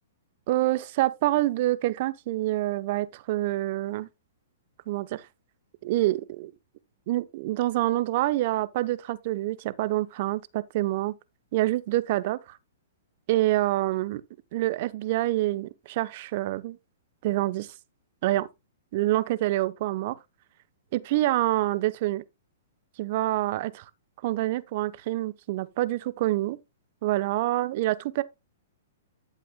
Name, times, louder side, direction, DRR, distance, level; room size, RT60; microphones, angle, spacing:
voice 1, 0.5-4.1 4.9-5.2 5.8-6.5 7.1-11.1 11.5-12.4 13.3-14.2 14.5-16.8 17.2-17.7 18.2-18.5 18.9-20.2 20.9-22.2 23.0-23.8 24.2-26.6 27.0-28.2, right 16 dB, 50° right, 0.8 m, -26 dB
11.0 x 8.3 x 2.2 m
hypercardioid pair, 120°, 0 cm